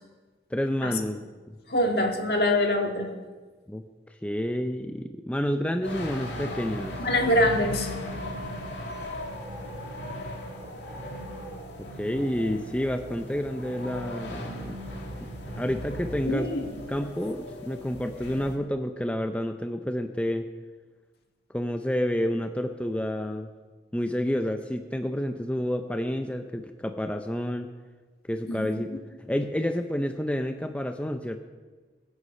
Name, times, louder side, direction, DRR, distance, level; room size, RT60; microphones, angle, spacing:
voice 1, 0.5-1.2 1.5-1.6 3.7-7.0 11.9-14.8 15.5-16.5 16.9-20.5 21.5-23.5 23.9-27.7 28.3-28.9 29.3-31.4, equal, 5° left, 6 dB, 0.5 m, -29 dB
voice 2, 1.7-3.1 7.0-7.9 16.3-16.7 28.5-28.8, left 1 dB, 60° left, 3 dB, 1.8 m, -24 dB
sound 1, 5.8-18.6, equal, 85° left, 2.4 m, -37 dB
21.5 x 8.2 x 5.4 m, 1.4 s
head